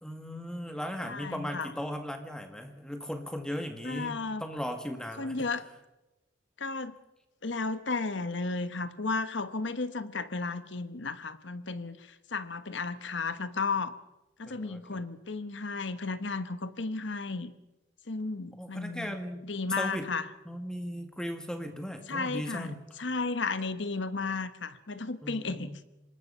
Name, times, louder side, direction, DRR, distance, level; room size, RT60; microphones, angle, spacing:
voice 1, 0.0-5.5 14.5-15.0 18.6-19.4 19.8-20.1 20.5-22.8 25.2-25.8, equal, 5° left, 6 dB, 1.9 m, -37 dB
voice 2, 1.0-1.7 3.8-4.4 5.2-5.6 6.6-6.9 7.4-14.0 14.4-17.5 18.1-19.2 19.4-20.3 22.1-25.8, left 3 dB, 70° left, 12 dB, 1.2 m, -34 dB
25.5 x 20.5 x 5.7 m, 1.0 s
head